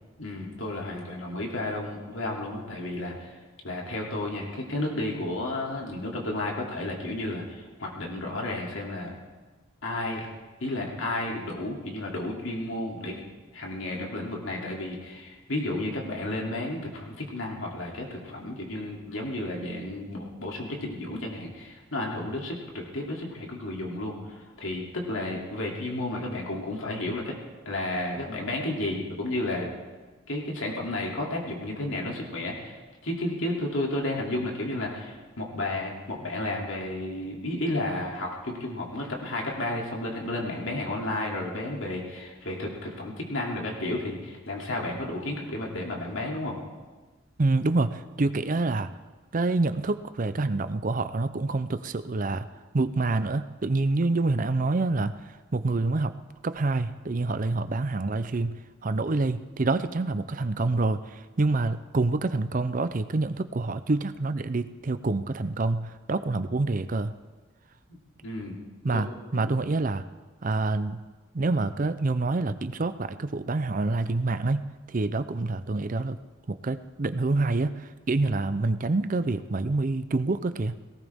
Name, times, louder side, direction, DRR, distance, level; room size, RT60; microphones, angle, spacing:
voice 1, 0.2-3.4 3.6-9.1 9.8-10.3 10.6-13.3 13.5-27.3 27.6-29.7 30.3-32.8 33.0-46.6 68.2-68.6 68.9-69.0 69.3-69.6, left 1 dB, 70° left, -1 dB, 2.8 m, -32 dB
voice 2, 47.4-48.9 49.3-52.5 52.7-55.1 55.5-56.1 56.4-58.6 58.8-67.1 68.8-69.1 69.3-70.0 70.4-71.0 71.3-76.2 76.5-80.7, right 3 dB, 40° right, 12 dB, 0.5 m, -27 dB
18.0 x 18.0 x 3.6 m, 1.3 s
head